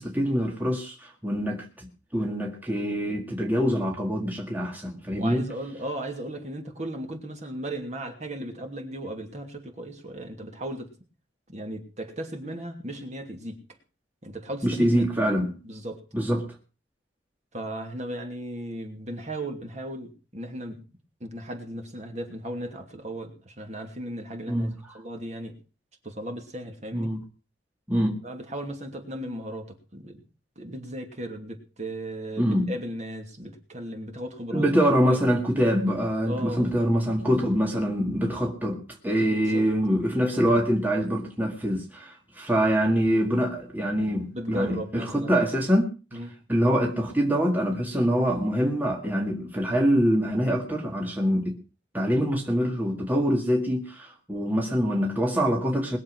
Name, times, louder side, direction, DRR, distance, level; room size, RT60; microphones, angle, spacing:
voice 1, 0.0-1.9 2.1-5.4 14.6-15.5 16.1-16.5 24.5-24.7 26.9-27.2 27.9-28.2 32.4-32.7 34.5-45.9 46.5-51.6 51.9-56.0, equal, 10° right, 1.9 m, -24 dB
voice 2, 5.1-10.9 11.5-13.6 14.2-15.0 15.6-16.0 17.5-20.8 21.2-25.6 26.0-27.1 28.2-30.2 30.6-34.7 35.1-35.2 36.3-36.7 39.2-39.7 44.3-45.4 46.1-46.3, right 1 dB, 40° right, 2.8 m, -36 dB
21.0 x 7.3 x 6.3 m
head